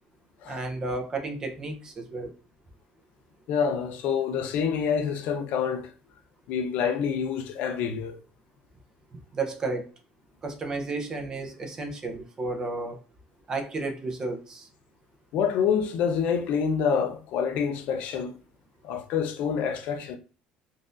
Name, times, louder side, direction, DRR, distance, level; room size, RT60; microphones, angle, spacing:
voice 1, 0.5-2.3 9.3-9.9 10.4-13.0 13.5-14.7, right 3 dB, 25° right, 0.7 m, -32 dB
voice 2, 3.5-5.9 6.5-8.2 15.3-18.3 18.8-20.2, left 7 dB, 65° left, 0.5 m, -27 dB
3.8 x 2.6 x 2.5 m
cardioid pair, 135°, 3 cm